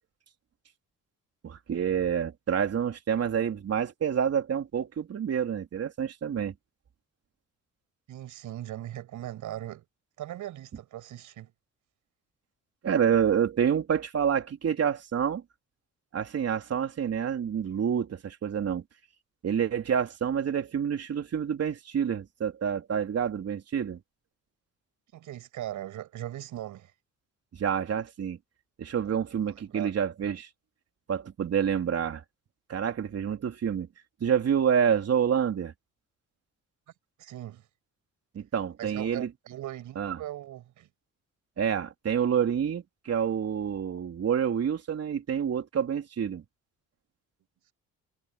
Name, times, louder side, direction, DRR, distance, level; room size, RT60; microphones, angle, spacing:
voice 1, 1.4-6.5 12.8-15.4 16.1-18.8 19.4-24.0 27.5-28.4 28.8-30.5 31.1-32.2 32.7-33.9 34.2-35.7 38.3-39.3 40.0-40.2 41.6-46.4, right 8 dB, 55° right, 3.9 m, -28 dB
voice 2, 8.1-9.8 10.2-11.5 25.1-26.9 29.7-29.9 37.2-37.6 38.8-40.9, right 13 dB, 80° right, 7.6 m, -39 dB
cardioid pair, 90°, 30 cm